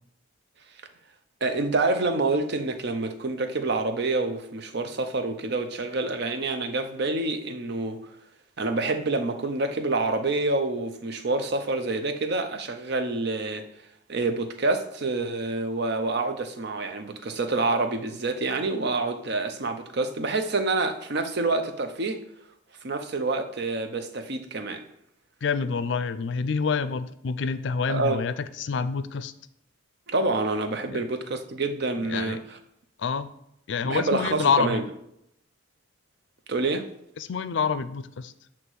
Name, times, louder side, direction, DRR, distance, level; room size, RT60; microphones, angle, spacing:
voice 1, 1.4-8.0 8.6-13.7 14.1-22.2 22.8-24.8 27.9-28.2 30.1-32.6 33.8-34.8 36.5-36.9, right 3 dB, 60° right, 0.7 m, -27 dB
voice 2, 25.4-29.3 30.9-31.0 32.1-32.4 33.0-33.3 33.7-34.8 37.2-38.3, left 5 dB, 65° left, 0.4 m, -27 dB
8.0 x 3.0 x 6.1 m
head